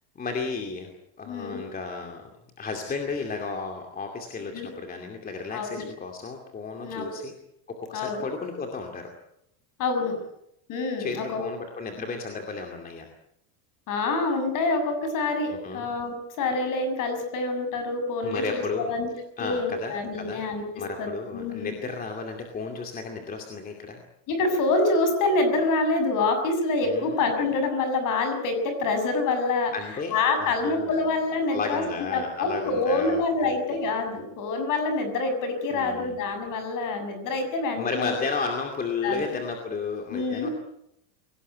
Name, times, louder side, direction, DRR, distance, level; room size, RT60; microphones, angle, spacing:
voice 1, 0.2-0.9 1.2-2.2 2.6-7.3 7.7-9.1 11.0-13.1 15.5-15.9 18.2-18.9 19.4-20.4 20.8-24.0 26.8-27.2 29.7-30.1 30.4-31.0 31.5-33.6 35.7-36.1 37.8-40.5, left 4 dB, 20° left, 3 dB, 2.5 m, -33 dB
voice 2, 1.3-1.6 4.5-4.7 5.5-5.9 6.8-7.2 7.9-8.3 9.8-10.2 10.7-11.4 13.9-19.1 19.4-21.7 24.3-29.7 30.1-31.8 32.1-38.2 39.0-39.4 40.1-40.5, left 3 dB, 40° left, 7 dB, 7.0 m, -26 dB
23.5 x 18.5 x 9.3 m, 0.79 s
cardioid pair, 170°, 48 cm